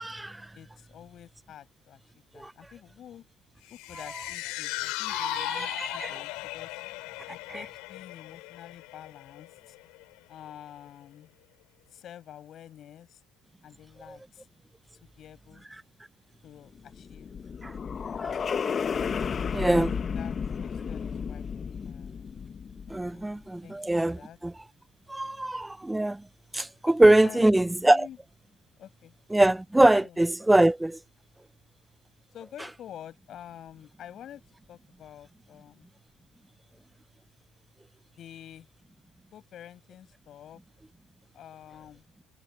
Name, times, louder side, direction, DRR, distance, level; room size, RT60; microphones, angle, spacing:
voice 1, 0.0-0.5 2.4-2.5 5.1-6.2 14.1-14.2 17.6-17.8 18.2-18.4 19.5-19.9 22.9-24.5 25.1-26.2 26.5-28.1 29.3-31.0, right 1 dB, 10° right, 0.3 m, -23 dB
voice 2, 0.5-2.0 2.3-3.3 3.7-6.8 7.3-9.8 10.3-11.3 11.9-13.2 13.6-14.5 15.0-15.7 16.4-17.3 17.7-17.9 18.2-18.4 19.4-22.3 23.1-23.8 24.0-24.4 27.2-28.2 28.8-29.2 30.0-30.2 32.3-34.4 34.7-35.9 38.2-38.7 39.3-40.6 41.3-42.0, left 10 dB, 55° left, 7.0 m, -48 dB
sound 1, 3.7-10.1 10.5-10.6, left 24 dB, 80° left, 7.1 m, -37 dB
sound 2, 16.8-23.2, left 6 dB, 40° left, 1.1 m, -33 dB
supercardioid pair, 75°, 0 cm